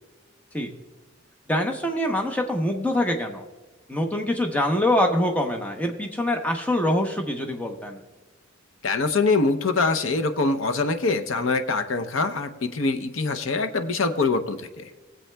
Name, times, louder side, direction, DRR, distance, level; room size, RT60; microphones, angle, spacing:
voice 1, 1.5-3.4 3.9-8.0, left 1 dB, 10° left, 2 dB, 0.8 m, -24 dB
voice 2, 8.8-14.9, left 3 dB, 85° left, 8 dB, 0.7 m, -24 dB
20.0 x 7.6 x 2.2 m, 1.2 s
head